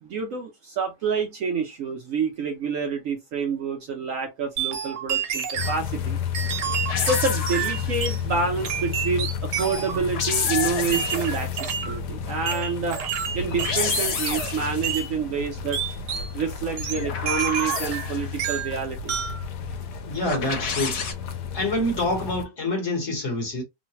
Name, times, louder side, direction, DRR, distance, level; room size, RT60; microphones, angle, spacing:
voice 1, 0.0-6.2 7.0-13.0 13.3-15.8 16.3-19.3, right 5 dB, 65° right, 0.9 m, -28 dB
sound 1, 4.6-5.8 6.3-8.2 8.6-10.0 10.9-12.0 12.5-14.6 14.8-15.1 15.7-16.3 16.8-18.1 18.4-18.8 19.1-19.4, right 8 dB, 80° right, 1.3 m, -29 dB
sound 2, 5.6-22.4, left 7 dB, 85° left, 1.2 m, -32 dB
sound 3, 6.9-8.2 9.9-11.6 13.4-15.0 16.8-18.4 20.2-21.1, left 5 dB, 70° left, 1.3 m, -29 dB
voice 2, 20.1-21.0 21.5-23.6, left 1 dB, 45° left, 1.3 m, -26 dB
3.1 x 2.1 x 2.8 m
omnidirectional pair, 1.8 m